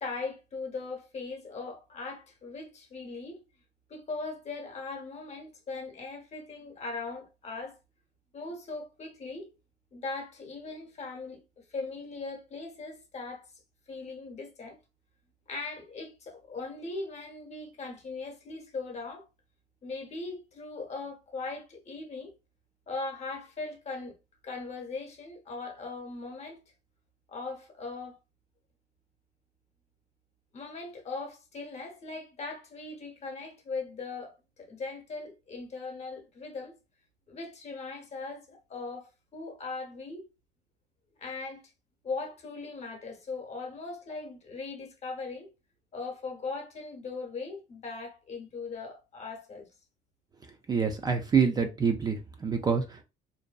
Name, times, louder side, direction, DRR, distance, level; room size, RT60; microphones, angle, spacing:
voice 1, 0.0-3.4 3.9-7.8 8.3-9.5 9.9-13.5 13.9-14.8 15.5-19.2 19.8-22.3 22.9-24.2 24.4-26.6 27.3-28.2 30.5-36.8 37.3-40.2 41.2-41.6 42.0-45.5 45.9-49.7, left 3 dB, 40° left, 0.8 m, -39 dB
voice 2, 50.7-53.0, right 6 dB, 25° right, 0.3 m, -26 dB
2.6 x 2.1 x 2.2 m
cardioid pair, 110°, 17 cm